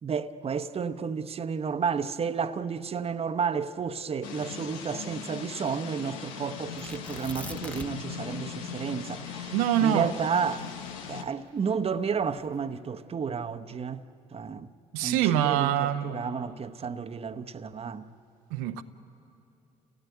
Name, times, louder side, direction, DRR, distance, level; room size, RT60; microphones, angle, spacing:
voice 1, 0.0-10.6 11.1-14.0 14.3-14.7 15.0-18.1, right 6 dB, 35° right, 1.0 m, -32 dB
sound 1, 4.2-11.2, left 7 dB, 85° left, 1.2 m, -39 dB
Tearing, 6.8-8.2 8.5-8.6 9.1-11.5 12.2-12.6, left 1 dB, 10° left, 1.2 m, -43 dB
voice 2, 9.5-10.1 14.9-16.1 18.5-18.8, right 11 dB, 85° right, 0.9 m, -25 dB
29.5 x 17.0 x 9.4 m
hypercardioid pair, 65°, 17 cm